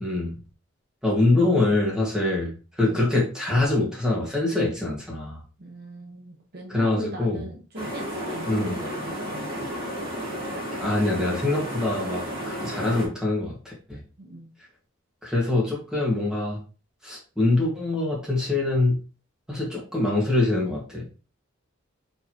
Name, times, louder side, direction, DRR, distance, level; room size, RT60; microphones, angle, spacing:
voice 1, 0.0-0.3 1.0-2.5 2.8-5.4 6.7-7.4 8.5-8.7 10.7-14.0 15.2-16.6 17.0-19.0 19.5-21.1, left 2 dB, 5° right, -4 dB, 1.7 m, -24 dB
voice 2, 5.6-9.7 14.2-14.5, right 1 dB, 50° right, -1 dB, 0.9 m, -38 dB
sound 1, 7.7-13.1, equal, 25° right, 1.6 m, -32 dB
4.4 x 3.7 x 2.9 m, 0.34 s
head